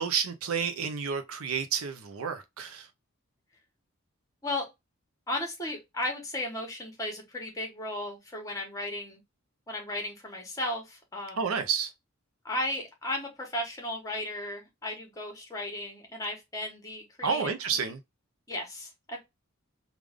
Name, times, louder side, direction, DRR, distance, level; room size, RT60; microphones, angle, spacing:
voice 1, 0.0-2.9 11.4-11.9 17.2-18.0, right 6 dB, 85° right, 0.6 m, -30 dB
voice 2, 5.3-9.2 9.7-11.5 12.4-17.5 18.5-19.2, left 1 dB, 15° left, 1.3 m, -35 dB
3.4 x 2.5 x 3.5 m
head